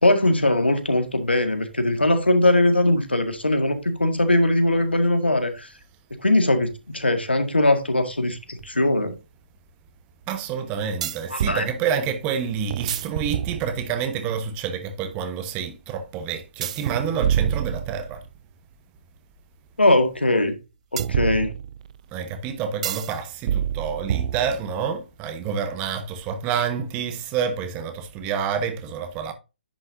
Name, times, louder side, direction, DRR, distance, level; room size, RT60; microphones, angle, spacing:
voice 1, 0.0-5.7 6.2-9.1 11.3-11.6 19.8-20.5 20.9-21.5, left 1 dB, 85° left, 1.8 m, -20 dB
sound 1, 8.6-8.7 11.0-11.6 12.7-14.0 16.6-18.3 21.0-22.0 22.8-23.1 23.5-24.8, right 9 dB, 40° right, 0.4 m, -27 dB
voice 2, 10.3-18.2 22.1-29.3, right 7 dB, 20° right, 1.2 m, -28 dB
10.5 x 6.0 x 2.7 m
figure-of-eight pair, 135°, 6 cm